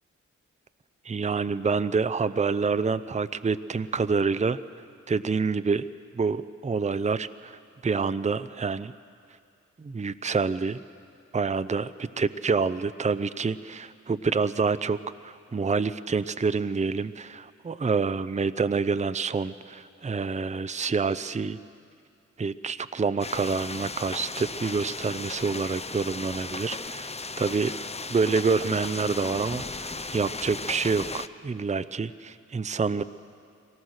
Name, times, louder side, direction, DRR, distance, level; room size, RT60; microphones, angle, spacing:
voice 1, 1.0-4.6 5.1-5.8 6.1-8.9 9.8-10.8 11.3-21.6 22.4-27.7 28.1-33.0, right 4 dB, 25° right, 13 dB, 0.6 m, -27 dB
sound 1, 23.2-31.3, left 3 dB, 20° left, 0.6 m, -36 dB
23.0 x 18.5 x 6.5 m, 2.3 s
cardioid pair, 45°, 30 cm